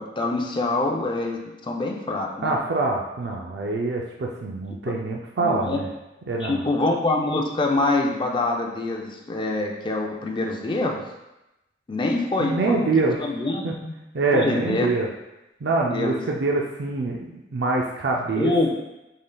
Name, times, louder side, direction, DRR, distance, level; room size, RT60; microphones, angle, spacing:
voice 1, 0.0-2.5 5.4-5.8 6.4-11.0 11.9-12.9 13.2-13.9 14.3-14.9 15.9-16.2 18.3-18.7, left 2 dB, 25° left, 1 dB, 0.4 m, -25 dB
voice 2, 2.4-5.8 6.3-6.6 12.4-13.2 13.6-13.7 14.1-15.1 15.6-18.7, right 3 dB, 65° right, -1 dB, 0.4 m, -25 dB
5.3 x 3.8 x 2.2 m, 0.95 s
head